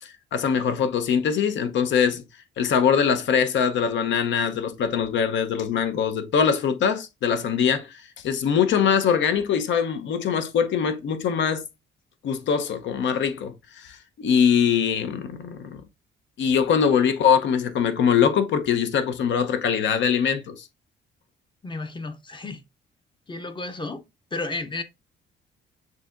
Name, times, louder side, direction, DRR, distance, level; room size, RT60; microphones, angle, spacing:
voice 1, 0.0-2.2 2.6-11.6 12.2-15.8 16.4-20.7, left 7 dB, 70° left, 0.7 m, -22 dB
voice 2, 21.6-22.6 23.3-24.0 24.3-24.8, left 3 dB, 25° left, 0.6 m, -32 dB
6.6 x 2.8 x 2.4 m
cardioid pair, 90°, 20 cm